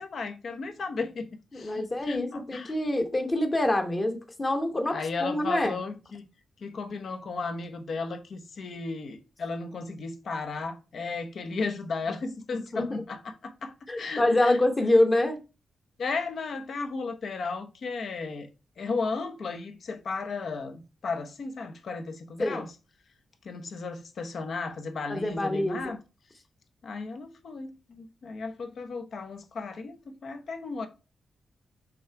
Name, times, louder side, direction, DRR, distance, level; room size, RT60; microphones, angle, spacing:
voice 1, 0.0-2.7 4.9-6.3 6.6-14.6 16.0-18.5 18.8-22.7 23.4-26.0 26.8-30.9, left 4 dB, 60° left, 1.0 m, -35 dB
voice 2, 1.5-5.8 12.5-12.9 13.9-15.4 22.4-22.6 25.1-25.9, left 1 dB, 25° left, 1.0 m, -26 dB
6.2 x 3.8 x 4.6 m
wide cardioid pair, 145°, 0 cm